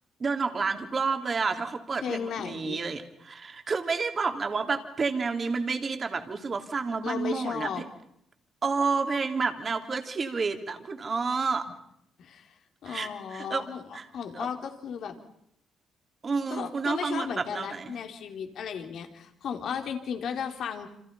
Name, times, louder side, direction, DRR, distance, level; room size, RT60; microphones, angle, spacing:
voice 1, 0.2-7.7 8.6-11.6 12.9-13.6 13.9-14.0 14.3-14.5 16.2-17.9, right 4 dB, 40° right, 6 dB, 3.5 m, -30 dB
voice 2, 2.0-2.8 7.0-7.8 12.2-13.8 14.1-15.1 16.5-20.9, left 7 dB, 70° left, 5 dB, 4.0 m, -35 dB
29.5 x 27.0 x 5.7 m, 0.76 s
cardioid pair, 90°, 0 cm